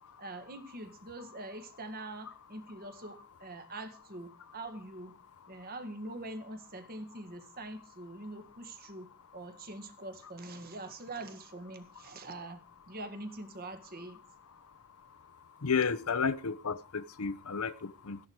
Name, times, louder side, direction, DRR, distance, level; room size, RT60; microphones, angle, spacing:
voice 1, 0.2-5.2 5.5-12.6 12.9-14.2, right 2 dB, 45° right, 8 dB, 1.9 m, -44 dB
voice 2, 15.6-18.2, left 5 dB, 75° left, 15 dB, 0.8 m, -32 dB
13.5 x 10.5 x 4.8 m, 0.35 s
head